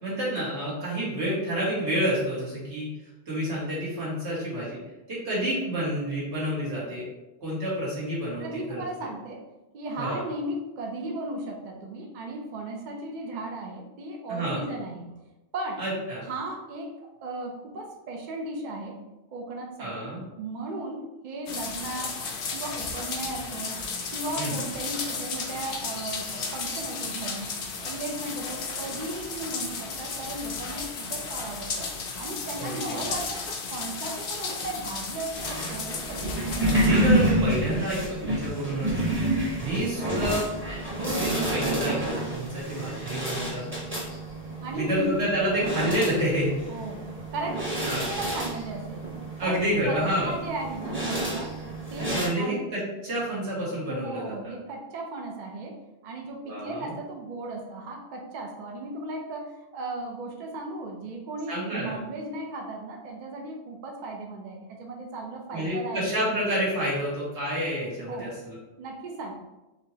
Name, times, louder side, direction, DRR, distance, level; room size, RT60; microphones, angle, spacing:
voice 1, 0.0-2.9 3.3-4.8 5.1-7.1 7.4-8.8 10.0-10.2 14.3-14.6 15.8-16.2 19.8-20.2 24.4-24.6 32.6-33.1 36.6-39.0 39.6-40.4 41.0-43.7 44.7-46.5 47.8-48.0 49.4-50.3 52.0-54.5 56.4-56.9 61.5-62.0 65.5-68.6, right 1 dB, 80° right, -8 dB, 2.0 m, -29 dB
voice 2, 8.4-9.4 9.7-15.0 15.5-15.8 16.2-17.0 17.2-19.0 19.3-20.0 20.4-22.2 22.5-27.5 27.8-31.9 32.2-36.5 40.0-40.5 44.6-45.2 46.7-49.1 49.4-49.6 49.9-51.6 51.9-52.6 53.7-66.1 68.1-68.3 68.8-69.3, right 2 dB, 55° right, 1 dB, 0.6 m, -36 dB
sound 1, 21.5-36.9, left 4 dB, 65° left, 0.8 m, -34 dB
sound 2, 35.4-52.3, right 1 dB, 10° right, 0.8 m, -29 dB
4.2 x 3.0 x 2.7 m, 1.0 s
omnidirectional pair, 1.1 m